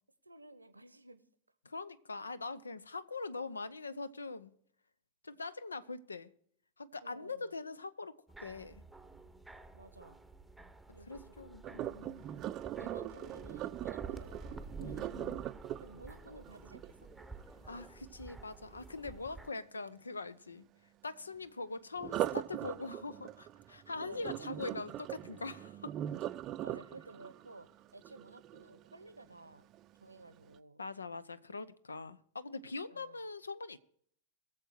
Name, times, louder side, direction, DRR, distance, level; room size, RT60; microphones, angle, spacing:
voice 1, 0.2-1.2 7.0-7.5 9.7-10.2 10.9-11.3 11.7-12.1 12.8-14.8 15.8-17.1 23.9-24.7 26.6-29.7 30.0-30.8 32.9-33.3, right 2 dB, 85° right, 0.8 m, -54 dB
voice 2, 1.6-4.5 5.2-6.3 6.8-8.8 11.1-12.3 14.8-15.4 17.6-20.7 21.0-25.9 30.8-33.8, left 3 dB, 75° left, 0.6 m, -43 dB
sound 1, 8.3-19.5, right 3 dB, ahead, 0.9 m, -51 dB
Sink (filling or washing), 11.6-17.6 22.0-29.0 29.5-29.8 30.3-30.4, right 12 dB, 35° right, 0.5 m, -41 dB
21.5 x 7.4 x 4.5 m
figure-of-eight pair, 90°, 0 cm